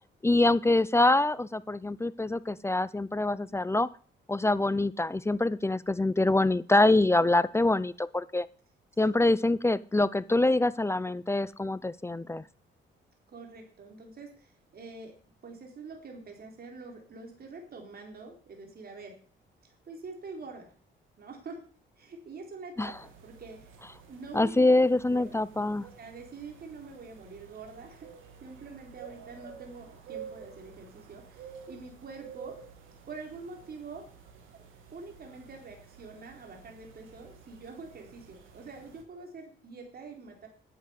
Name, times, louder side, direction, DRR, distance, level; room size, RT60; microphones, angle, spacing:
voice 1, 0.2-3.9 4.3-8.5 9.0-12.4 22.8-22.9 24.3-25.9, left 2 dB, 15° left, 18 dB, 0.5 m, -25 dB
voice 2, 13.3-15.2 15.4-19.2 19.6-20.7 21.2-21.6 22.0-23.7 24.1-25.4 25.8-28.1 28.4-32.6 33.1-34.1 34.5-34.6 34.9-40.5, right 4 dB, 50° right, 2 dB, 4.1 m, -45 dB
sound 1, 22.8-39.0, right 7 dB, 85° right, 2.6 m, -51 dB
10.0 x 7.9 x 8.3 m, 0.44 s
cardioid pair, 90°, 20 cm